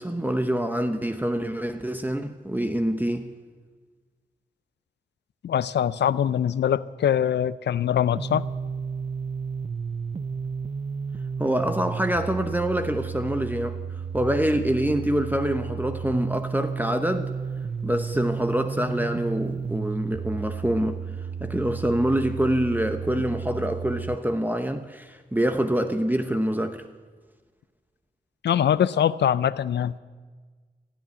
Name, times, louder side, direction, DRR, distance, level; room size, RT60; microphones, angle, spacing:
voice 1, 0.0-3.3 11.4-13.8 14.1-17.3 17.8-21.0 21.4-26.8, right 1 dB, 10° right, 0.9 m, -25 dB
voice 2, 5.4-8.5 28.4-29.9, left 9 dB, 80° left, 0.5 m, -23 dB
sound 1, 8.1-24.2, right 6 dB, 40° right, 0.5 m, -33 dB
15.5 x 7.5 x 9.5 m
cardioid pair, 45°, 17 cm